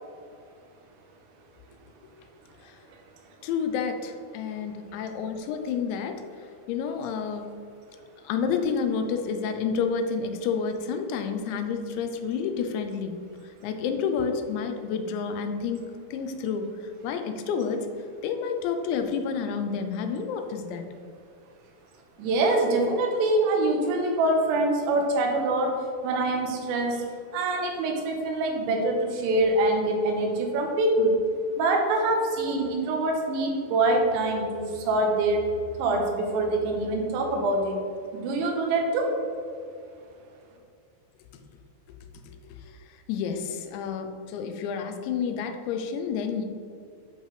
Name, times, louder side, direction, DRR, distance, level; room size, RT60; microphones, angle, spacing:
voice 1, 3.4-6.2 6.7-7.5 8.2-13.2 13.6-15.8 16.1-16.7 17.0-17.9 18.2-20.8 42.5-42.6 43.1-46.5, left 6 dB, 90° left, 6 dB, 2.9 m, -29 dB
voice 2, 22.2-25.8 26.0-27.1 27.3-31.2 31.6-35.4 35.8-37.8 38.1-39.2, right 2 dB, 85° right, 1 dB, 3.4 m, -25 dB
9.4 x 5.4 x 3.2 m, 2.4 s
omnidirectional pair, 5.1 m